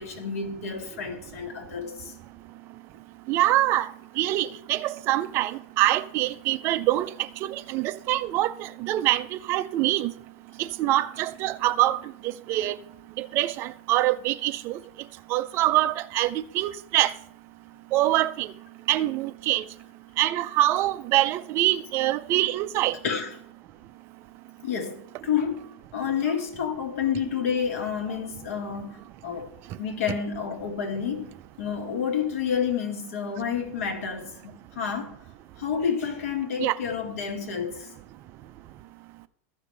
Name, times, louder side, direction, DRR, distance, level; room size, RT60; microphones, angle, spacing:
voice 1, 0.0-2.1 23.0-23.3 24.6-29.5 29.8-35.1 35.6-37.9, left 7 dB, 90° left, 1.7 m, -29 dB
voice 2, 3.3-3.9 4.2-7.1 7.4-10.1 10.6-12.0 12.5-12.8 13.2-14.8 15.3-17.1 17.9-18.5 18.9-19.6 20.2-22.9 36.6-36.8, right 15 dB, 30° right, 0.4 m, -24 dB
14.5 x 5.9 x 3.3 m
supercardioid pair, 160°, 8 cm